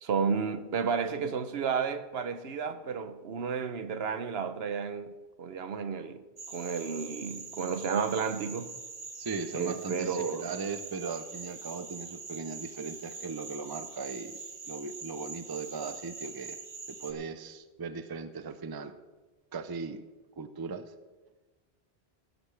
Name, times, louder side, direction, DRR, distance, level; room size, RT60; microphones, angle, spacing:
voice 1, 0.0-6.2 6.5-8.7 9.5-10.5, right 6 dB, 70° right, 1.0 m, -32 dB
sound 1, 6.4-17.1, right 4 dB, 50° right, 1.2 m, -44 dB
voice 2, 9.1-14.4 14.7-16.6 16.9-18.9 19.5-20.0 20.4-20.9, right 4 dB, 30° right, 0.5 m, -38 dB
16.5 x 12.5 x 3.3 m
omnidirectional pair, 1.1 m